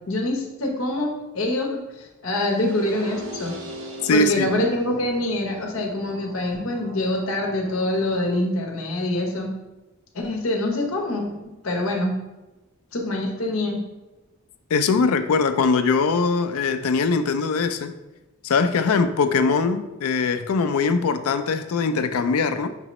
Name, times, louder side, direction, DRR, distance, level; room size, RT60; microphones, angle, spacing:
voice 1, 0.1-1.7 2.2-3.5 4.1-9.5 10.1-11.3 11.6-12.1 12.9-13.8, left 1 dB, 70° left, 1 dB, 0.9 m, -25 dB
sound 1, 2.4-8.4, equal, 70° right, 0.9 m, -40 dB
voice 2, 4.0-4.5 14.7-17.9 18.4-22.7, left 4 dB, 90° left, 10 dB, 0.4 m, -21 dB
6.0 x 2.8 x 3.0 m, 1.1 s
head